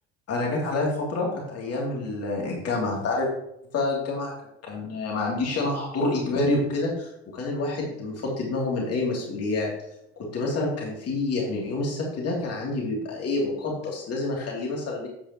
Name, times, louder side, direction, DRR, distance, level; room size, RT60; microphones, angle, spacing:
voice 1, 0.3-3.3 3.7-4.3 4.6-9.7 10.3-15.1, left 2 dB, 50° left, -2 dB, 2.8 m, -27 dB
8.7 x 8.3 x 3.0 m, 0.78 s
hypercardioid pair, 70°, 32 cm